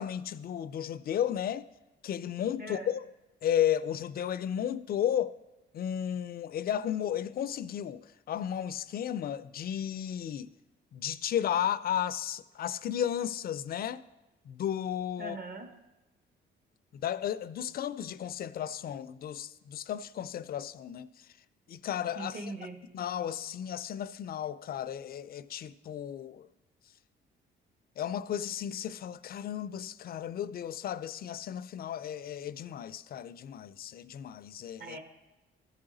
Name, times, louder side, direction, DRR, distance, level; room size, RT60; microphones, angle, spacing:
voice 1, 0.0-1.7 2.0-3.1 3.4-5.4 5.7-10.5 10.9-14.0 14.4-15.4 16.9-21.3 21.7-22.4 22.9-26.5 28.0-35.0, left 10 dB, 50° left, 0.4 m, -34 dB
voice 2, 2.6-2.9 15.2-15.7 22.1-22.8 34.8-35.0, right 2 dB, 50° right, 1.2 m, -40 dB
14.0 x 4.8 x 3.8 m
cardioid pair, 90°, 20 cm